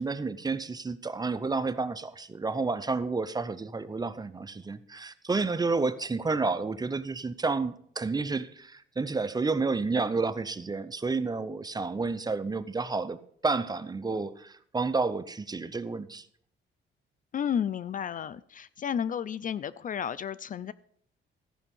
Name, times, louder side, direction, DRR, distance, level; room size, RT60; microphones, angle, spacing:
voice 1, 0.0-16.2, right 4 dB, 20° right, 0.6 m, -30 dB
voice 2, 17.3-20.7, left 8 dB, 40° left, 0.4 m, -32 dB
14.0 x 5.4 x 5.4 m
cardioid pair, 90°, 20 cm